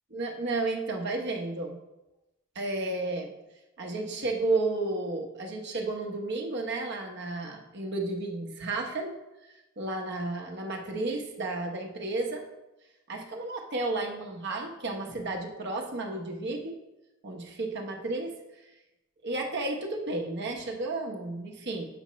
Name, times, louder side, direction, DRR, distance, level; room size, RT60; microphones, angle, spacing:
voice 1, 0.1-1.8 2.5-3.3 3.8-9.1 9.8-12.4 13.1-16.7 17.2-18.3 19.2-21.8, right 2 dB, 60° right, 2 dB, 1.0 m, -32 dB
7.9 x 5.7 x 3.1 m, 0.99 s
head